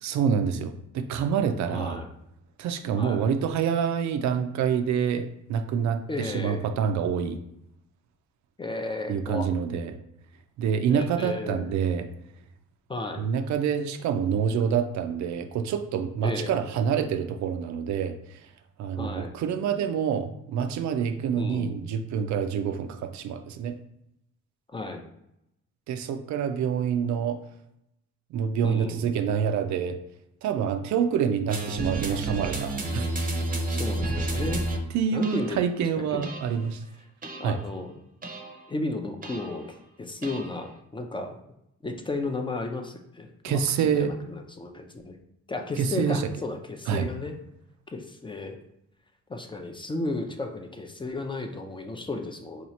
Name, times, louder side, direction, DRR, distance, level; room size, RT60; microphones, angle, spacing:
voice 1, 0.0-2.0 2.6-7.4 9.1-10.0 10.6-12.1 13.2-18.4 18.8-23.7 25.9-27.4 28.3-30.0 30.4-33.1 34.9-36.8 37.4-37.6 43.4-44.1 45.8-46.3 46.9-47.1, right 7 dB, 70° right, 8 dB, 0.4 m, -27 dB
voice 2, 1.7-2.1 2.9-3.2 6.1-6.6 8.6-9.5 10.9-11.7 12.9-13.2 16.2-16.6 19.0-19.3 21.4-21.8 24.7-25.0 28.6-29.1 33.7-34.6 35.1-35.6 36.1-36.3 37.4-37.9 38.7-41.4 41.8-45.2 45.5-47.3 47.9-48.6 49.3-52.7, left 2 dB, 15° left, 4 dB, 0.4 m, -34 dB
sound 1, 31.5-34.8 35.2-35.6 36.2-36.6 37.2-37.6 38.2-38.6 39.2-39.7 40.2-40.6, right 2 dB, 30° right, 0.6 m, -31 dB
2.9 x 2.4 x 4.1 m, 0.79 s
cardioid pair, 90°, 30 cm